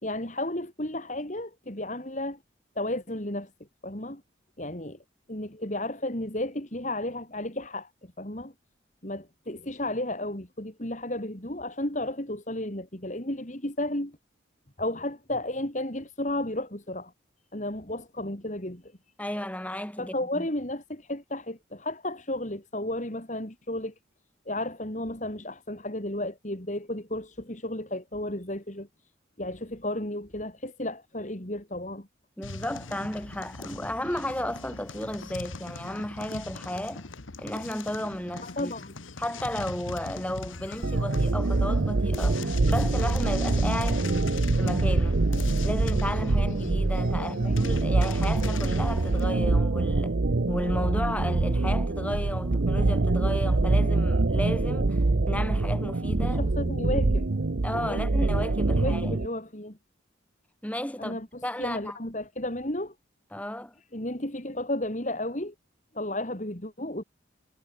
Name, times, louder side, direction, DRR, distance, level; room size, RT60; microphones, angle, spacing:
voice 1, 0.0-2.4 2.7-3.5 3.8-4.2 4.6-5.0 5.3-8.5 9.0-14.2 14.8-17.1 17.5-18.9 20.0-23.9 24.5-28.9 29.4-32.1 38.4-39.0 47.2-47.6 56.4-57.3 57.7-58.0 58.7-59.8 61.0-62.9 63.9-65.5 65.9-67.0, left 1 dB, 40° left, 3.0 m, -33 dB
voice 2, 19.2-20.5 32.4-37.1 37.4-38.7 39.2-44.1 44.6-45.2 45.6-50.2 50.5-56.9 57.6-59.2 60.6-62.0 63.3-63.7, left 1 dB, 5° left, 2.7 m, -34 dB
sound 1, 32.4-49.3, left 3 dB, 90° left, 1.6 m, -40 dB
sound 2, 40.8-59.3, right 2 dB, 65° right, 0.8 m, -25 dB
head